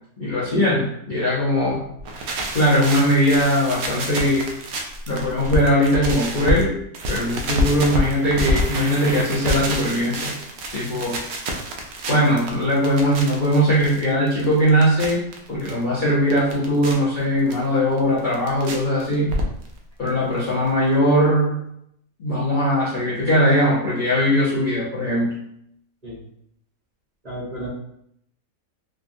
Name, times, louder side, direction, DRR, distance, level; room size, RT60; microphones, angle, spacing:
voice 1, 0.2-1.8 2.5-4.5 5.1-6.8 7.1-10.3 10.7-11.2 12.1-15.2 15.5-19.3 20.0-21.5 22.2-25.3, equal, 45° left, -9 dB, 0.7 m, -20 dB
sound 1, 1.9-6.6 6.9-15.7 16.1-16.9 17.5-17.6 18.0-18.7 19.0-19.8 20.1-20.2 20.4-20.5 20.7-20.8, equal, 85° right, 1.1 m, -27 dB
voice 2, 27.2-27.7, right 1 dB, 35° right, -8 dB, 0.8 m, -32 dB
3.4 x 2.2 x 2.5 m, 0.73 s
omnidirectional pair, 1.6 m